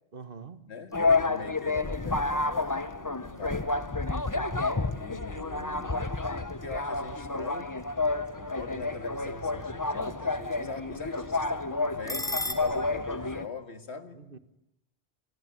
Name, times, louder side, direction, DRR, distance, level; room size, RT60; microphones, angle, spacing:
voice 1, 0.1-0.7 4.3-4.8 14.1-14.4, right 5 dB, 60° right, 1.7 m, -46 dB
voice 2, 0.7-4.1 4.9-6.1 6.6-7.9 8.3-14.3, left 4 dB, 85° left, 2.3 m, -43 dB
sound 1, 0.8-12.5, left 2 dB, 5° left, 3.5 m, -44 dB
sound 2, 0.9-13.5, left 3 dB, 20° left, 1.0 m, -30 dB
28.5 x 22.5 x 9.1 m
omnidirectional pair, 1.1 m